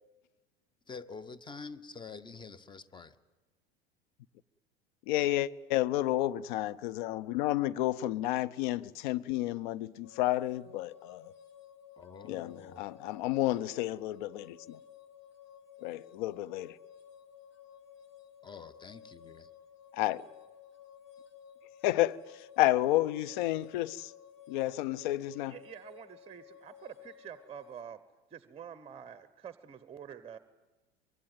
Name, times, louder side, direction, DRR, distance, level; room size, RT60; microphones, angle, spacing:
voice 1, 0.9-3.2 12.0-12.9 18.4-19.5, left 4 dB, 15° left, 1.1 m, -47 dB
voice 2, 5.1-11.3 12.3-14.8 15.8-16.8 19.9-20.3 21.8-24.1 24.5-25.6, left 15 dB, 50° left, 0.7 m, -31 dB
sound 1, 10.0-27.8, left 8 dB, 65° left, 2.4 m, -55 dB
voice 3, 25.5-28.0 28.3-30.4, right 8 dB, 20° right, 1.0 m, -47 dB
24.5 x 21.5 x 9.3 m
figure-of-eight pair, 80°, 32 cm